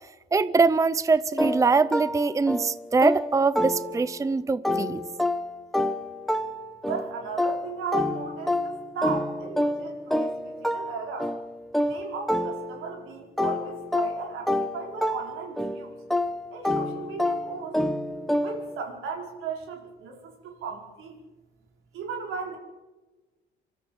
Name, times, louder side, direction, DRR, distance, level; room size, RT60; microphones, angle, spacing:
voice 1, 0.3-5.0, right 4 dB, 15° right, 16 dB, 0.6 m, -23 dB
sound 1, 1.4-4.2 4.6-13.0 13.4-18.8, left 1 dB, ahead, 1.2 m, -28 dB
voice 2, 6.8-11.3 11.8-15.9 16.5-17.8 18.4-21.2 21.9-22.6, right 5 dB, 85° right, 2 dB, 4.9 m, -36 dB
26.0 x 13.5 x 7.9 m, 1.2 s
cardioid pair, 105°, 20 cm